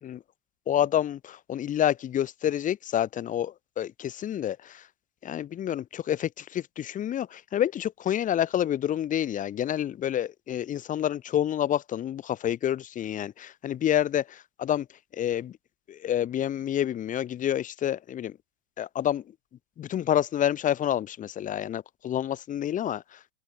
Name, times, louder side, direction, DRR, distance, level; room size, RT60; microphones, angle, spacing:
voice 1, 0.7-4.8 5.2-14.9 15.1-15.6 15.9-18.4 18.8-19.2 19.8-23.2, left 10 dB, 20° left, 4.7 m, -28 dB
open air
hypercardioid pair, 115°, 35 cm